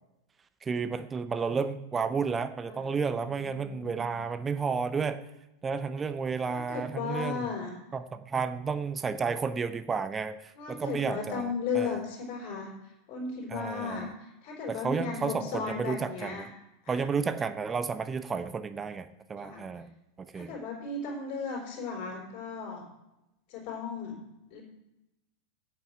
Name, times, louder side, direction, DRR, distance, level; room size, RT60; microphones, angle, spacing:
voice 1, 0.6-5.2 5.6-7.5 7.9-12.0 13.5-14.1 14.7-16.5 16.9-19.9 20.2-20.5, right 5 dB, 15° right, 11 dB, 0.6 m, -32 dB
voice 2, 3.2-4.1 6.5-7.7 10.6-12.7 13.1-16.5 16.8-17.0 19.4-19.6 20.3-22.8 23.5-24.2 24.5-24.6, left 5 dB, 45° left, -1 dB, 3.8 m, -35 dB
8.4 x 6.8 x 7.8 m, 0.93 s
figure-of-eight pair, 90°, 0 cm